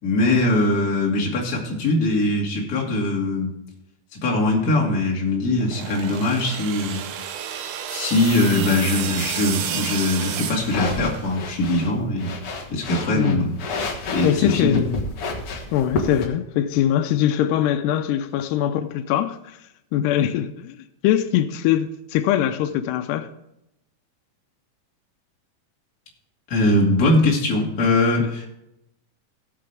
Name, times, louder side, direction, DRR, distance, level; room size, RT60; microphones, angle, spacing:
voice 1, 0.0-3.5 4.2-7.0 7.9-12.3 12.7-13.6 14.1-14.8 26.5-28.5, left 2 dB, 30° left, 2.1 m, -21 dB
sound 1, 5.6-11.5, right 9 dB, 75° right, 1.9 m, -31 dB
sound 2, 10.6-16.2, left 3 dB, 55° left, 1.6 m, -31 dB
voice 2, 13.1-13.5 14.2-15.1 15.7-19.6 19.9-20.7 21.0-23.3, left 11 dB, 85° left, 2.7 m, -22 dB
17.5 x 7.7 x 3.4 m
omnidirectional pair, 4.7 m